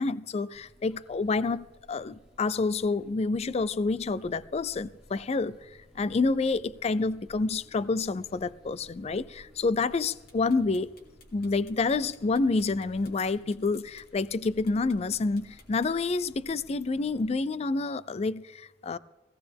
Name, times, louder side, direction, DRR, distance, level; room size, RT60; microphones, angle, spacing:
voice 1, 0.0-5.7 5.9-10.9 11.3-19.0, left 3 dB, 35° left, 0.4 m, -28 dB
sound 1, 0.5-17.3, equal, ahead, 1.8 m, -57 dB
sound 2, 9.8-16.3, left 4 dB, 60° left, 2.7 m, -58 dB
17.0 x 17.0 x 3.5 m
head